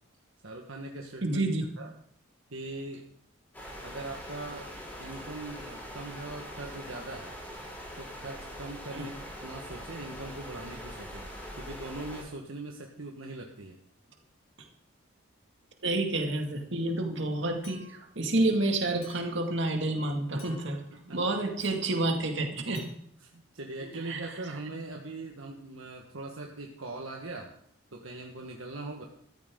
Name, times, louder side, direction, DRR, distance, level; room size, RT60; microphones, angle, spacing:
voice 1, 0.4-1.4 1.8-1.9 2.5-3.1 3.8-4.7 5.0-7.3 8.0-13.8 20.3-21.2 23.2-27.5 27.9-29.0, right 2 dB, 80° right, 1 dB, 1.4 m, -41 dB
voice 2, 1.2-1.6 8.9-9.1 15.8-20.8 21.1-22.9 23.8-24.2, right 2 dB, 60° right, 3 dB, 2.2 m, -29 dB
sound 1, 3.5-12.2, equal, 10° left, 4.3 m, -43 dB
Chink clink, 17.6-18.2 19.0-19.5 20.4-20.9 21.6-21.9 22.8-22.9, left 2 dB, 30° left, 3.6 m, -51 dB
14.5 x 13.5 x 3.8 m, 0.68 s
head